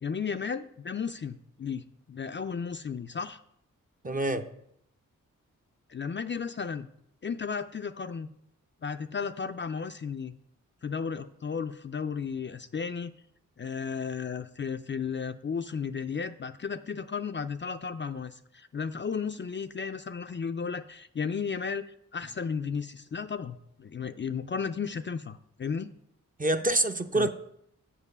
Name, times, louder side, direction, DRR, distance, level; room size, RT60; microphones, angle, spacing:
voice 1, 0.0-3.4 5.9-6.9 7.2-8.3 8.8-10.4 10.8-13.1 13.6-25.9 27.1-27.3, left 6 dB, 35° left, 0.4 m, -34 dB
voice 2, 4.0-4.5 26.4-27.3, right 2 dB, 25° right, 0.6 m, -26 dB
7.5 x 4.6 x 6.8 m
cardioid pair, 55°, 33 cm